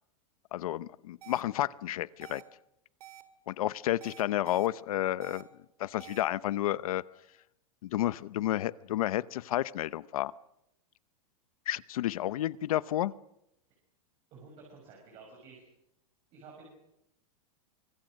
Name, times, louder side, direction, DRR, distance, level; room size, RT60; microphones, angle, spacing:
voice 1, 0.5-2.4 3.5-5.5 5.8-7.0 7.8-10.3 11.7-13.1, left 13 dB, 75° left, 17 dB, 0.9 m, -31 dB
sound 1, 1.2-1.4 2.2-2.4 3.0-3.2 4.0-4.7 5.2-5.4 6.0-6.2, right 13 dB, 90° right, 2.5 m, -49 dB
voice 2, 14.3-15.6 16.3-16.7, right 4 dB, 30° right, 0 dB, 6.3 m, -51 dB
25.0 x 23.0 x 6.5 m, 0.83 s
supercardioid pair, 175°, 19 cm